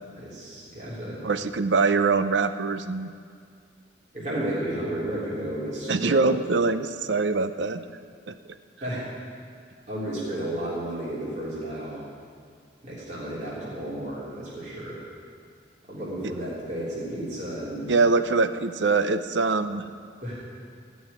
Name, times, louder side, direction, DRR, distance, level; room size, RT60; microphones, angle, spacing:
voice 1, 0.1-1.2 4.1-6.2 8.8-9.0 9.9-12.0 12.8-15.0 15.9-17.9 20.2-20.4, right 1 dB, 40° right, -8 dB, 3.4 m, -32 dB
voice 2, 1.2-3.1 5.9-7.8 8.3-8.4 17.9-19.8, right 4 dB, 75° right, 11 dB, 0.6 m, -23 dB
15.5 x 6.3 x 9.6 m, 2.2 s
head